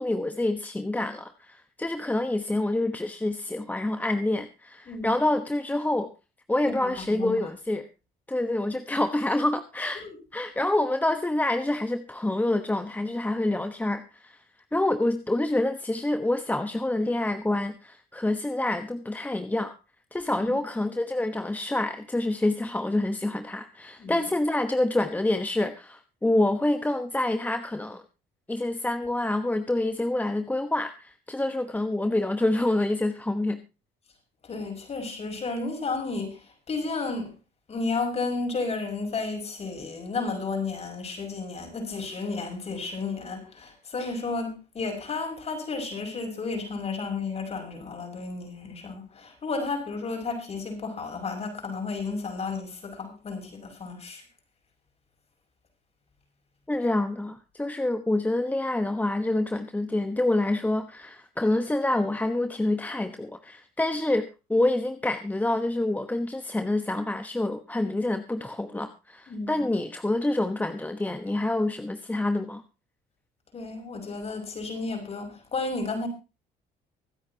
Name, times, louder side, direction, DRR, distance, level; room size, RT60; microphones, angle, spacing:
voice 1, 0.0-6.1 6.5-7.9 8.3-10.0 10.3-14.4 14.7-19.7 20.1-28.0 28.5-33.6 56.7-72.6, left 1 dB, 10° left, 1.1 m, -27 dB
voice 2, 4.9-5.2 6.6-7.5 10.0-10.2 20.4-20.5 24.0-24.2 34.4-37.3 37.7-54.2 69.3-69.7 73.5-76.1, left 3 dB, 40° left, 6.0 m, -32 dB
24.5 x 8.7 x 2.8 m
cardioid pair, 110°, 17 cm